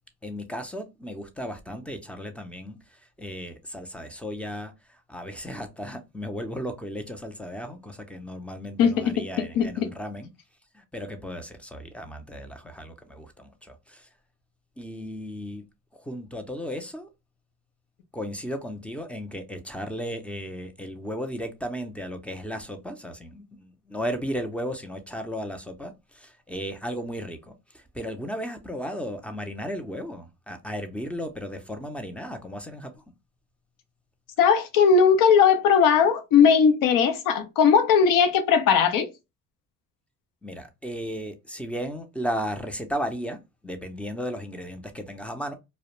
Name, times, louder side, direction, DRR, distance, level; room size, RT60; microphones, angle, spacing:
voice 1, 0.2-10.3 10.7-14.1 14.8-15.6 16.0-17.1 18.1-33.0 40.4-45.5, equal, 5° left, 0.5 m, -35 dB
voice 2, 8.8-9.9 34.4-39.1, left 6 dB, 70° left, 0.7 m, -19 dB
2.3 x 2.1 x 2.9 m
supercardioid pair, 85°, 34 cm